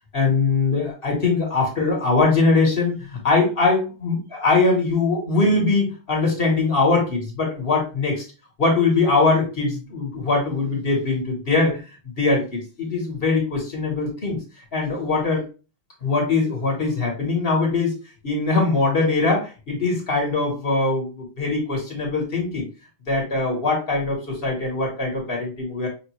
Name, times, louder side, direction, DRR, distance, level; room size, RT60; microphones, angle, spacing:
voice 1, 0.1-8.2 8.6-11.8 12.2-14.4 14.7-15.4 16.0-17.9 18.2-22.7 23.1-25.9, left 3 dB, 35° left, -1 dB, 1.0 m, -21 dB
5.4 x 2.4 x 3.0 m, 0.33 s
omnidirectional pair, 2.4 m